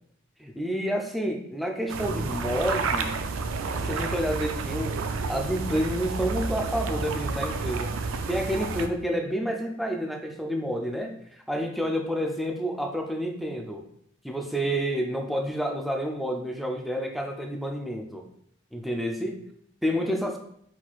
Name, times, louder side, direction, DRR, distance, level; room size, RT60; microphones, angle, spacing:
voice 1, 0.4-3.2 3.7-5.0 5.3-7.9 8.3-13.8 14.2-18.2 18.7-19.4 19.8-20.4, equal, ahead, 2 dB, 0.4 m, -29 dB
sound 1, 1.9-8.9, right 4 dB, 85° right, 0.4 m, -30 dB
4.4 x 4.2 x 2.4 m, 0.69 s
head